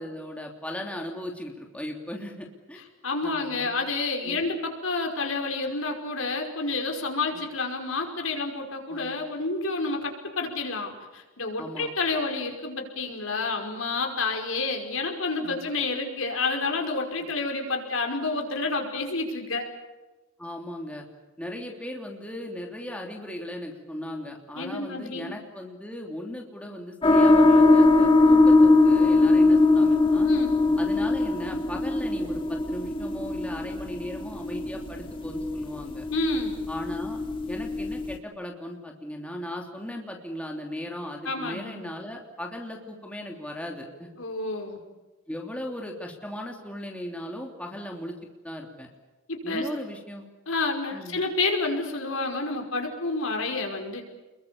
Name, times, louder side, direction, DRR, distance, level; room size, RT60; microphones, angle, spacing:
voice 1, 0.0-2.8 3.2-3.7 4.2-4.4 8.9-9.1 11.6-11.9 15.4-15.6 20.4-21.1 21.4-30.3 30.8-36.0 36.7-37.2 37.5-44.1 45.3-48.2 48.4-48.9 49.4-50.3 50.9-51.2, left 1 dB, 5° left, 1 dB, 3.1 m, -37 dB
voice 2, 3.0-19.7 24.6-25.3 30.2-30.5 36.1-36.6 41.3-41.9 44.2-44.8 49.3-49.7 50.5-54.0, left 3 dB, 75° left, 3 dB, 5.3 m, -29 dB
sound 1, 27.0-38.1, left 2 dB, 25° left, 2.5 m, -21 dB
29.5 x 22.5 x 7.2 m, 1.2 s
head